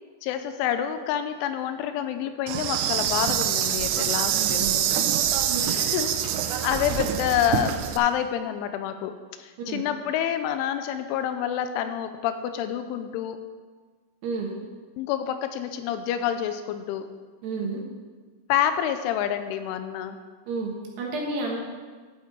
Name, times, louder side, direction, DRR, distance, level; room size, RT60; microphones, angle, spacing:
voice 1, 0.2-5.1 5.7-6.1 6.6-13.4 15.0-17.1 18.5-20.2, left 10 dB, 85° left, 9 dB, 3.0 m, -28 dB
Insect, 2.5-8.0, right 10 dB, 85° right, 3.1 m, -25 dB
voice 2, 4.3-4.9 5.5-5.6 9.7-9.8 14.2-14.5 17.4-17.8 20.5-21.6, right 3 dB, 70° right, -1 dB, 3.1 m, -31 dB
12.0 x 8.4 x 4.5 m, 1.4 s
omnidirectional pair, 5.6 m